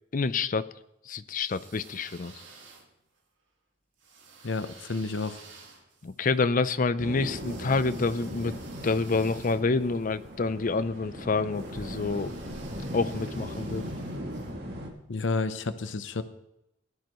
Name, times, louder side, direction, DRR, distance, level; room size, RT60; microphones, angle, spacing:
voice 1, 0.1-0.7 1.1-2.3 6.0-8.5 8.8-12.3 12.9-13.9, left 4 dB, 45° left, 14 dB, 0.6 m, -27 dB
sound 1, 1.3-3.2 4.0-10.4 11.5-14.5, right 4 dB, 85° right, 2.0 m, -53 dB
voice 2, 4.4-5.4 15.1-16.2, left 3 dB, 85° left, 11 dB, 0.8 m, -30 dB
sound 2, 7.0-14.9, equal, 60° right, 2.3 m, -38 dB
18.0 x 12.0 x 3.1 m, 0.86 s
head